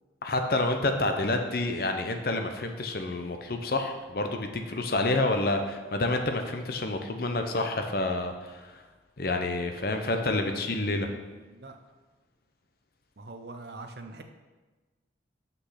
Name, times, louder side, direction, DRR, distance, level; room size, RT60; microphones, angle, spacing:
voice 1, 0.2-8.7 9.2-11.1, left 2 dB, 50° left, 5 dB, 0.7 m, -28 dB
voice 2, 11.0-11.8 13.2-14.2, right 2 dB, 60° right, 6 dB, 0.7 m, -44 dB
6.3 x 5.7 x 5.7 m, 1.3 s
head